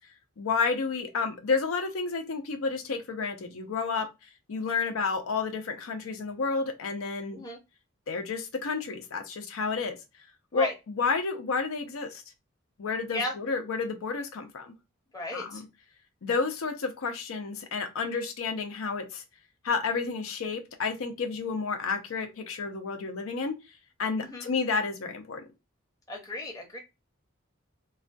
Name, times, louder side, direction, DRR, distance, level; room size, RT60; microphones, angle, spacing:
voice 1, 0.4-4.1 4.5-7.4 8.1-10.0 10.5-12.2 12.8-14.7 15.3-15.6 16.2-19.2 19.6-23.5 24.0-25.4, left 4 dB, 90° left, 0.5 m, -30 dB
voice 2, 15.1-15.6 24.2-24.5 26.1-26.8, left 1 dB, 15° left, 0.6 m, -34 dB
2.3 x 2.2 x 2.5 m
head